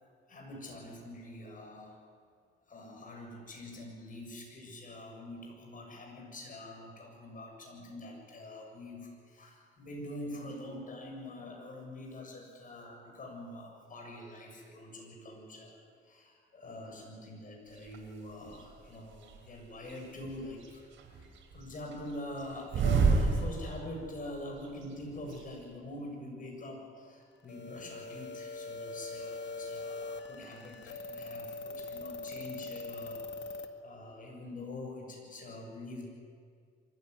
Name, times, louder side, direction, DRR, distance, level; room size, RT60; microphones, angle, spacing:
voice 1, 0.3-2.0 2.7-15.8 16.0-20.9 21.1-33.2 33.5-36.1, left 1 dB, 40° left, 1 dB, 7.4 m, -45 dB
sound 1, 17.8-18.0 18.5-19.4 19.9-20.7 21.0-24.1 24.4-24.5 24.6-25.4, right 4 dB, 75° right, 3.6 m, -29 dB
sound 2, 27.5-33.7, left 3 dB, 65° left, 2.0 m, -42 dB
24.5 x 15.0 x 9.7 m, 2.1 s
cardioid pair, 90°, 20 cm